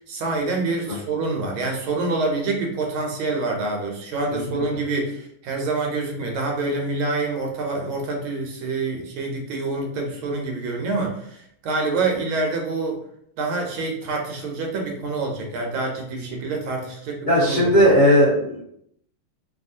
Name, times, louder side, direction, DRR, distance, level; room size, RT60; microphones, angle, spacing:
voice 1, 0.1-11.4 11.6-13.0 13.4-17.9, right 3 dB, 90° right, 1 dB, 1.6 m, -26 dB
voice 2, 17.3-18.6, equal, 90° left, -9 dB, 0.4 m, -17 dB
3.5 x 2.4 x 2.6 m, 0.71 s
omnidirectional pair, 2.3 m